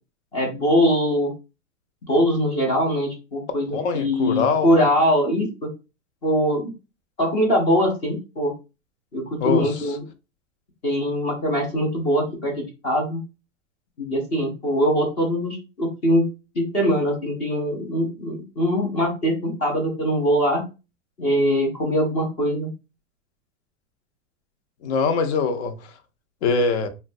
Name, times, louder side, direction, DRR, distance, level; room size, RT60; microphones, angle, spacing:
voice 1, 0.3-1.3 2.1-5.7 6.2-6.7 7.2-8.5 9.1-10.0 10.8-12.5 12.8-13.2 14.0-16.3 16.6-20.6 21.2-22.7, equal, 15° left, 0.3 m, -22 dB
voice 2, 3.7-4.9 9.4-10.0 24.8-25.7 26.4-26.9, left 4 dB, 60° left, 0.6 m, -23 dB
3.0 x 2.1 x 2.5 m
supercardioid pair, 155°, 39 cm